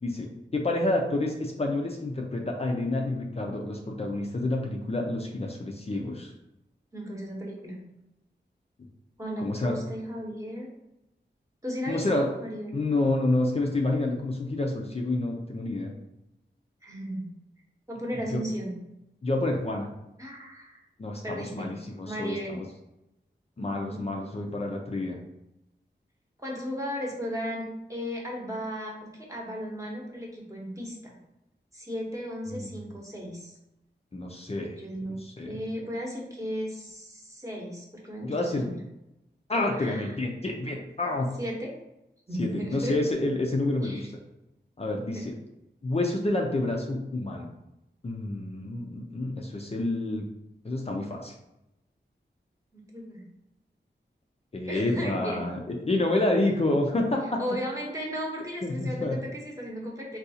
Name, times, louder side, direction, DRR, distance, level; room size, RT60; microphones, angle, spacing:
voice 1, 0.0-6.3 9.4-9.7 11.9-12.3 12.7-15.9 18.3-18.4 19.2-19.9 21.0-22.6 23.6-25.2 32.5-32.7 34.1-34.8 35.2-35.6 38.2-38.7 39.5-41.3 42.4-44.0 44.8-45.3 45.8-47.5 48.0-50.2 50.6-51.3 54.5-57.4 58.6-59.2, left 2 dB, 35° left, 0 dB, 0.4 m, -28 dB
voice 2, 6.9-7.8 9.2-10.7 11.6-12.8 16.8-17.3 17.9-18.7 20.2-20.8 21.2-21.7 22.0-22.6 23.6-24.1 26.4-31.2 31.7-33.5 34.8-35.2 35.5-38.8 39.8-40.2 41.4-41.7 42.3-43.0 43.8-44.1 45.1-45.2 52.7-53.2 54.7-55.4 57.4-60.2, equal, 15° right, -2 dB, 0.9 m, -35 dB
3.6 x 2.3 x 2.7 m, 0.89 s
wide cardioid pair, 75°, 19 cm